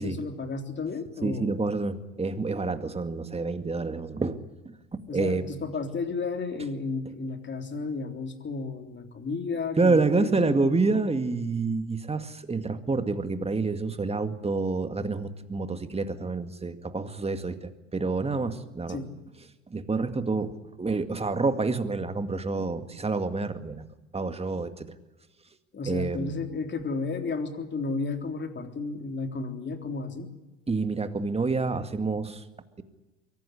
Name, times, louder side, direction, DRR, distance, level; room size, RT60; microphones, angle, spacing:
voice 1, 0.0-1.6 5.1-10.6 18.9-19.1 20.4-20.5 25.7-30.3, left 4 dB, 30° left, 5 dB, 3.6 m, -33 dB
voice 2, 1.2-4.4 4.7-4.8 5.1-5.4 9.8-19.0 19.7-23.8 24.1-24.9 25.9-26.4 30.7-32.4, right 3 dB, 15° right, 9 dB, 2.1 m, -28 dB
23.5 x 17.5 x 9.8 m, 1.1 s
hypercardioid pair, 70°, 36 cm